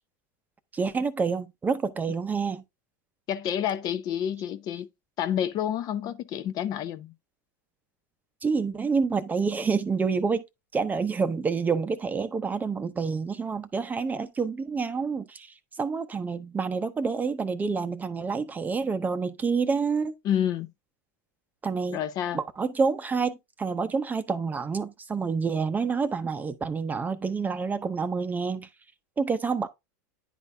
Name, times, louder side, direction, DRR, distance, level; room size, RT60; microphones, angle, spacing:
voice 1, 0.7-2.6 8.4-10.4 10.7-20.2 21.6-22.0 22.3-28.7 29.2-29.7, right 5 dB, 15° right, 0.7 m, -28 dB
voice 2, 3.3-4.9 5.2-7.1 20.2-20.7 21.9-22.4, left 10 dB, 40° left, 0.6 m, -29 dB
10.0 x 4.1 x 3.3 m
supercardioid pair, 120°, 10 cm